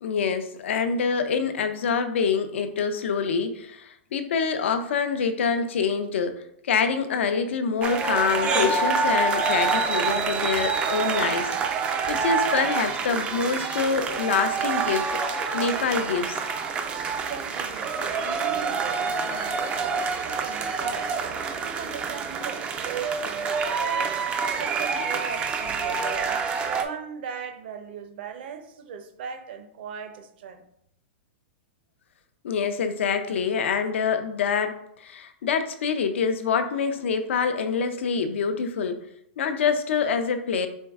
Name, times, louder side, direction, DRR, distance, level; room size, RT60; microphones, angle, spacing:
voice 1, 0.0-11.8 12.1-16.4 32.4-39.0 39.4-40.7, left 6 dB, 80° left, 8 dB, 0.6 m, -26 dB
sound 1, 7.8-26.8, right 5 dB, 20° right, 0.3 m, -27 dB
voice 2, 17.3-21.3 21.6-26.4 26.8-30.6, right 7 dB, 55° right, 7 dB, 0.7 m, -38 dB
4.4 x 3.1 x 3.5 m, 0.74 s
supercardioid pair, 160°, 6 cm